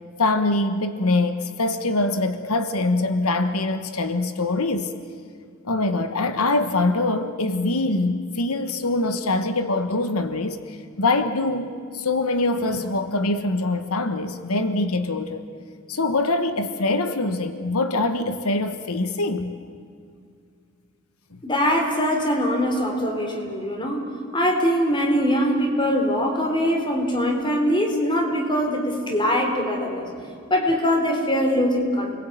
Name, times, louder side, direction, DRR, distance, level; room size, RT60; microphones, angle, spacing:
voice 1, 0.2-4.9 5.6-15.4 15.9-19.6, left 2 dB, 85° left, 9 dB, 1.3 m, -24 dB
voice 2, 21.4-24.0 24.3-32.2, equal, 20° left, 3 dB, 4.1 m, -22 dB
29.5 x 21.5 x 9.4 m, 2.3 s
head